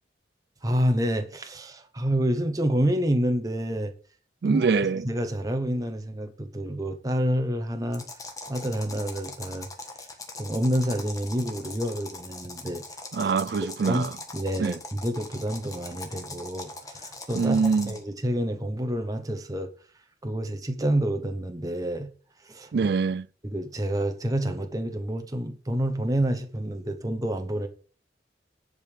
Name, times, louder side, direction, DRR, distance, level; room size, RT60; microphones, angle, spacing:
voice 1, 0.6-3.9 4.5-4.7 5.0-8.1 8.5-9.7 10.4-12.8 13.9-14.0 14.3-19.7 20.2-22.1 22.4-22.9 23.4-27.7, equal, 20° right, 1.0 m, -28 dB
voice 2, 4.4-5.1 13.1-14.1 14.6-14.8 17.3-17.9 22.7-23.3, right 5 dB, 60° right, 0.4 m, -24 dB
sound 1, 7.9-18.1, left 3 dB, 20° left, 1.5 m, -41 dB
10.5 x 5.3 x 6.7 m
head